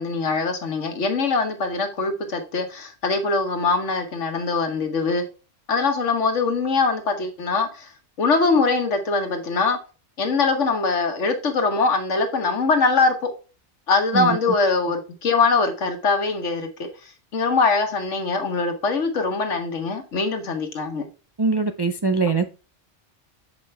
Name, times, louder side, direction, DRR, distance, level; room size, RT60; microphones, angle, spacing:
voice 1, 0.0-5.2 5.7-7.9 8.2-9.8 10.2-13.3 13.9-16.9 17.3-21.1, left 4 dB, 85° left, 1.6 m, -22 dB
voice 2, 14.1-14.5 21.4-22.5, right 4 dB, 45° right, 0.3 m, -22 dB
7.3 x 5.2 x 3.3 m
omnidirectional pair, 1.2 m